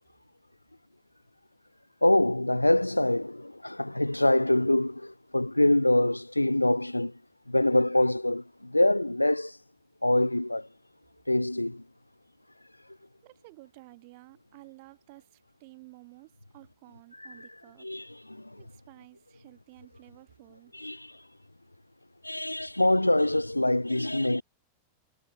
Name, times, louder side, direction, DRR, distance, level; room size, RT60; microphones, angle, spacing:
voice 1, 2.0-7.1 7.5-9.6 10.0-10.7 11.3-11.8 17.8-18.6 20.7-21.1 22.2-24.4, left 1 dB, 85° left, 0.3 m, -25 dB
voice 2, 13.2-17.9 18.6-20.7, right 25 dB, 50° right, 8.0 m, -53 dB
figure-of-eight pair, 90°, 0 cm